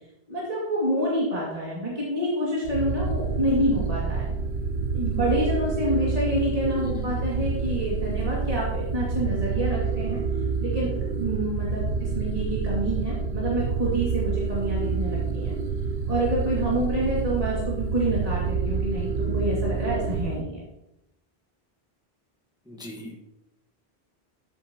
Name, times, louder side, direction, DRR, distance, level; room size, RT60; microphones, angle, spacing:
voice 1, 0.3-4.3 4.9-10.2 10.6-15.5 16.1-20.6, right 1 dB, 35° right, -6 dB, 2.4 m, -27 dB
sound 1, 2.6-20.4, right 5 dB, 60° right, 0.8 m, -28 dB
voice 2, 6.8-7.1 22.7-23.2, left 1 dB, 5° right, 0 dB, 1.3 m, -39 dB
13.0 x 8.5 x 2.9 m, 0.90 s
omnidirectional pair, 1.1 m